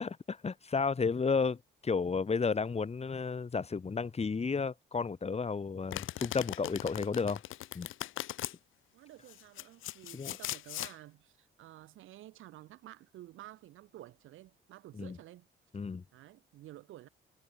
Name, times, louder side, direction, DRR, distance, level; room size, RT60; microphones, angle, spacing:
voice 1, 0.0-7.4 7.7-7.9 10.1-10.4 14.9-15.2 15.7-16.0, left 5 dB, 30° left, 3.6 m, -32 dB
Domestic sounds home sounds, 5.9-8.5 9.3-10.9, left 14 dB, 85° left, 3.5 m, -39 dB
voice 2, 8.9-15.5 16.1-17.1, right 15 dB, 85° right, 5.0 m, -52 dB
cardioid pair, 90°, 20 cm